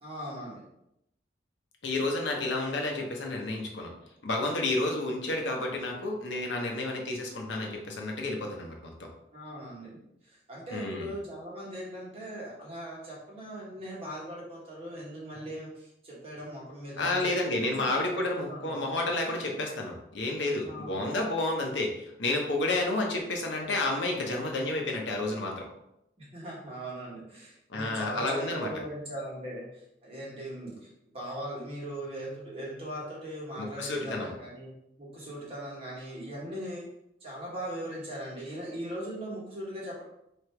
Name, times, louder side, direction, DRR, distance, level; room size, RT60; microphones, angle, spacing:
voice 1, 0.0-0.6 9.3-9.9 10.2-18.9 20.6-21.1 26.2-36.8 37.2-40.0, right 1 dB, 30° right, -6 dB, 1.5 m, -39 dB
voice 2, 1.8-3.9 4.2-8.9 10.7-11.1 17.0-25.7 27.7-28.7 33.6-34.3, left 2 dB, 80° left, 1 dB, 0.9 m, -30 dB
3.2 x 3.0 x 4.5 m, 0.81 s
head